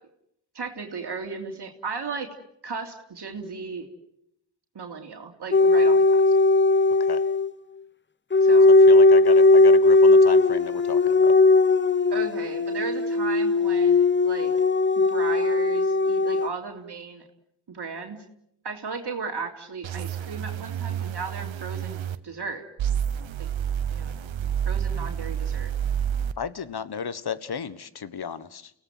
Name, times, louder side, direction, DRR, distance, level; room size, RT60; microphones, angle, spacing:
voice 1, 0.5-2.3 2.6-3.9 4.7-6.3 8.4-8.8 12.1-14.5 15.0-17.2 17.7-18.2 18.6-22.6 23.4-23.5 23.9-24.1 24.6-25.7, right 4 dB, 60° right, 3 dB, 3.2 m, -35 dB
sound 1, 5.5-7.5 8.3-16.5, left 3 dB, 25° left, 0.9 m, -18 dB
voice 2, 8.9-11.3 26.4-28.7, left 7 dB, 55° left, 15 dB, 1.4 m, -34 dB
sound 2, 19.8-22.2 22.8-26.3, right 9 dB, 85° right, 1.1 m, -29 dB
29.5 x 17.5 x 7.8 m, 0.77 s
cardioid pair, 55°, 45 cm